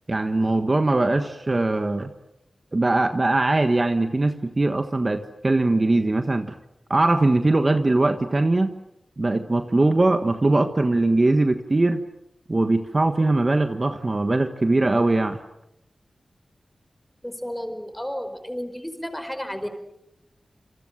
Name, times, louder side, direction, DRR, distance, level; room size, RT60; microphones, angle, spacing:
voice 1, 0.1-2.1 2.7-6.5 6.9-8.7 9.2-12.0 12.5-15.4, right 2 dB, 35° right, 7 dB, 1.5 m, -21 dB
voice 2, 17.2-19.7, equal, 5° left, 8 dB, 4.8 m, -32 dB
28.0 x 27.5 x 7.7 m, 0.86 s
wide cardioid pair, 95°, 0 cm